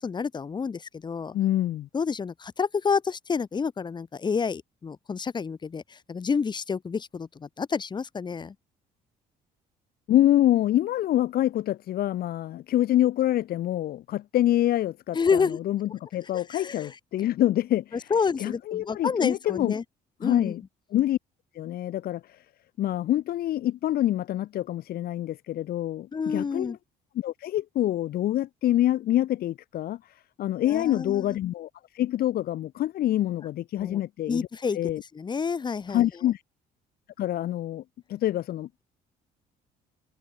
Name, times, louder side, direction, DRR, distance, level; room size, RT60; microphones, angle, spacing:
voice 1, 0.0-1.3 1.9-8.5 15.1-15.6 16.5-16.9 18.1-19.8 20.2-20.5 26.1-26.8 30.6-31.3 33.8-34.0 34.3-36.0, left 5 dB, 25° left, 1.1 m, -29 dB
voice 2, 1.3-1.9 10.1-18.1 18.4-19.7 20.2-20.6 20.9-21.2 21.5-22.4 22.8-26.7 27.1-30.0 30.4-31.7 31.9-34.5 34.7-35.0 35.9-36.4 37.2-37.8 38.1-38.8, left 13 dB, 65° left, 1.5 m, -26 dB
cardioid pair, 110°, 17 cm